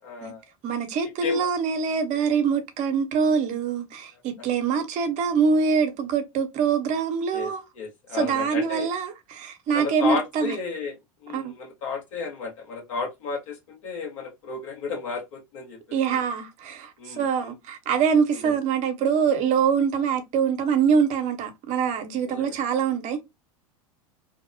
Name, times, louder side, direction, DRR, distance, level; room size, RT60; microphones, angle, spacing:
voice 1, 0.0-0.4 1.2-1.5 7.3-8.9 9.7-11.0 11.2-15.8 16.1-16.2 17.0-17.5 18.4-18.5 22.2-22.6, left 4 dB, 65° left, 1.2 m, -33 dB
voice 2, 0.6-7.6 8.1-10.5 11.3-11.5 15.9-23.2, right 6 dB, 45° right, 0.7 m, -24 dB
2.7 x 2.0 x 2.6 m
hypercardioid pair, 80°, 18 cm